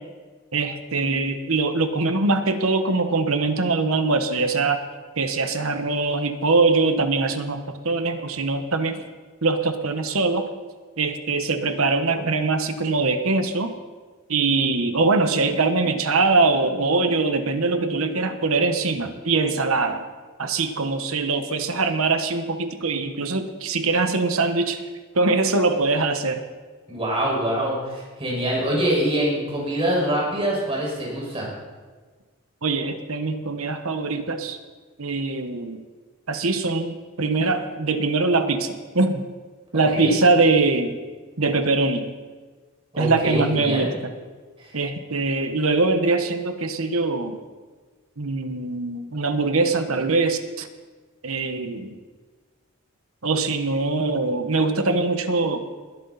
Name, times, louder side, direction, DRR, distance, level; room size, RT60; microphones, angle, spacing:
voice 1, 0.5-4.8 5.2-9.0 9.4-10.4 11.0-13.7 14.3-20.0 20.4-24.8 25.1-26.4 32.6-34.6 35.0-35.8 36.3-39.2 39.7-41.0 41.4-42.1 43.0-44.1 44.7-47.4 48.2-50.7 51.2-52.0 53.2-55.6, right 3 dB, 75° right, 8 dB, 1.2 m, -22 dB
voice 2, 26.9-31.5 39.9-40.1 42.9-43.9 44.6-44.7, right 1 dB, 25° right, -4 dB, 5.4 m, -24 dB
20.5 x 11.0 x 4.1 m, 1.4 s
head